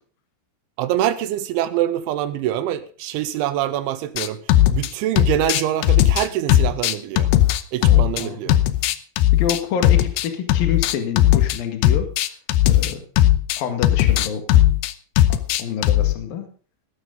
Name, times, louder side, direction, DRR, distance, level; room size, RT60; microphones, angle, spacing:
voice 1, 0.8-4.4 4.7-7.3 7.7-8.6, right 12 dB, 80° right, 12 dB, 3.0 m, -24 dB
sound 1, 4.2-4.9 5.2-8.2 8.5-11.6 11.8-16.1, left 13 dB, 90° left, 2.3 m, -17 dB
voice 2, 7.8-8.8 9.3-12.1 12.6-13.0 13.6-14.4 15.3-16.5, left 7 dB, 55° left, 6 dB, 3.2 m, -28 dB
17.0 x 12.5 x 3.9 m, 0.40 s
omnidirectional pair, 5.9 m